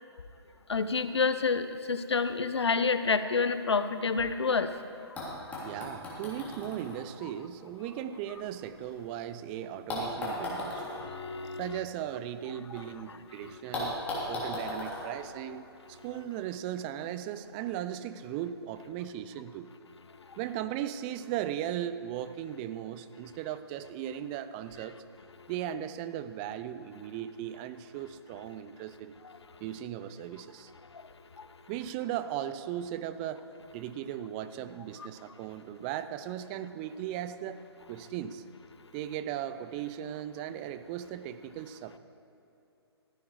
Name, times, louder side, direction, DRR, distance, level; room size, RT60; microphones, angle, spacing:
voice 1, 0.7-4.7 10.7-11.8 31.4-31.5 35.0-35.1, left 4 dB, 75° left, 11 dB, 0.8 m, -29 dB
sound 1, 5.2-9.2 9.9-12.8 13.1-13.2 13.7-16.1 17.1-17.2, left 1 dB, 10° left, 3.0 m, -38 dB
voice 2, 5.6-10.9 11.6-14.0 14.3-19.7 20.4-25.0 25.5-29.1 29.6-30.7 31.7-33.4 33.7-37.6 37.9-38.4 38.9-42.0, right 11 dB, 20° right, 12 dB, 0.4 m, -37 dB
14.5 x 9.5 x 4.7 m, 2.8 s
figure-of-eight pair, 135°, 14 cm